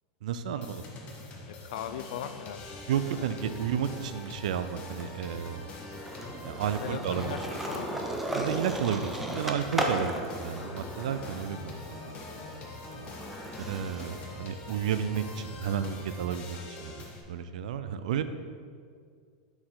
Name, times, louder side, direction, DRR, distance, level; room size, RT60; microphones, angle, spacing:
voice 1, 0.2-0.8 2.9-5.8 6.4-7.4 8.3-12.0 12.3-12.4 13.7-18.2, right 8 dB, 80° right, 11 dB, 0.4 m, -32 dB
sound 1, 0.6-17.2, left 2 dB, 30° left, 1.0 m, -44 dB
voice 2, 1.5-2.8 3.2-3.3 6.8-8.1 13.1-13.4 16.5-16.7, left 9 dB, 75° left, 10 dB, 0.4 m, -40 dB
Skateboard, 2.0-3.6 3.9-14.2, right 1 dB, 5° right, 0.5 m, -37 dB
6.4 x 4.8 x 3.8 m, 2.1 s
supercardioid pair, 140°, 4 cm